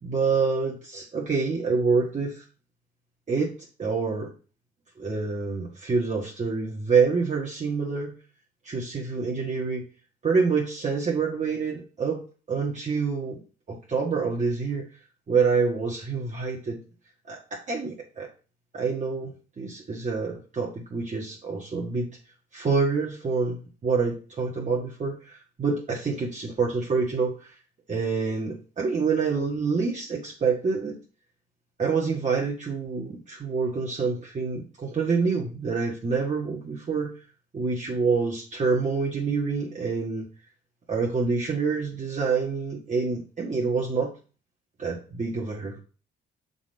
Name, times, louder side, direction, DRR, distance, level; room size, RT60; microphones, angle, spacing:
voice 1, 0.0-2.4 3.3-3.5 3.8-4.3 5.0-8.1 8.6-9.9 10.2-12.2 12.5-13.4 13.7-14.9 15.3-16.8 17.3-18.3 18.7-22.1 22.5-27.5 27.9-31.0 31.8-37.1 37.5-40.2 40.9-44.1 44.8-45.8, right 4 dB, 35° right, -2 dB, 1.6 m, -27 dB
6.2 x 4.1 x 5.2 m, 0.36 s
cardioid pair, 90°, 20 cm